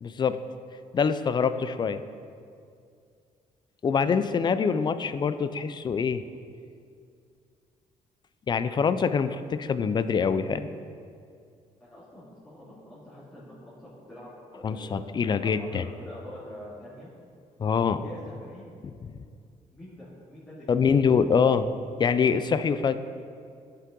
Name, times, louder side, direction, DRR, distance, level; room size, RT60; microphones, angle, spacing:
voice 1, 0.0-0.4 0.9-2.0 3.8-6.2 8.5-10.7 14.6-15.8 17.6-18.0 19.0-19.1 20.7-21.7 22.0-23.0, left 6 dB, 35° left, 12 dB, 0.4 m, -24 dB
voice 2, 4.4-4.8 11.8-17.1 17.7-18.7 19.7-20.8, left 1 dB, 10° left, -11 dB, 2.3 m, -45 dB
11.5 x 5.5 x 3.8 m, 2.4 s
cardioid pair, 115°, 14 cm